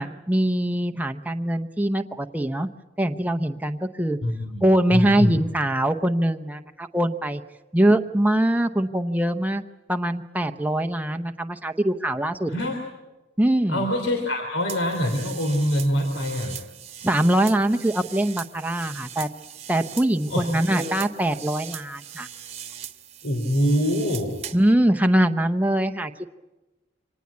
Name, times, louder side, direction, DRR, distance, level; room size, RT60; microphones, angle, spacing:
voice 1, 0.0-2.7 3.0-4.2 4.6-7.4 7.7-9.6 9.9-12.5 13.4-13.9 17.0-19.3 19.7-22.3 24.5-26.3, right 1 dB, 10° right, 7 dB, 0.7 m, -23 dB
voice 2, 4.2-5.5 12.5-12.8 13.7-16.6 20.3-20.5 23.2-24.3, equal, 80° left, 2 dB, 3.2 m, -24 dB
sound 1, 14.7-24.7, right 7 dB, 30° right, 1.2 m, -39 dB
25.0 x 19.0 x 8.5 m, 1.1 s
head